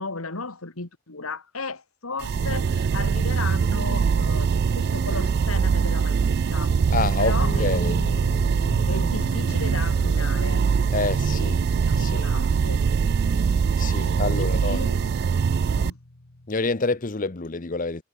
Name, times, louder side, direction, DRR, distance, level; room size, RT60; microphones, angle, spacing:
voice 1, 0.0-6.7 7.2-8.0 8.9-10.6 11.8-12.8 13.9-15.0 15.8-16.0, left 3 dB, 85° left, 2.5 m, -35 dB
sound 1, 2.2-15.9, right 6 dB, 50° right, 0.3 m, -23 dB
voice 2, 6.9-8.0 10.9-11.6 12.0-12.3 13.8-14.9 16.5-18.0, left 3 dB, 40° left, 0.8 m, -27 dB
Guitar, 7.4-16.7, left 1 dB, 60° left, 1.6 m, -39 dB
head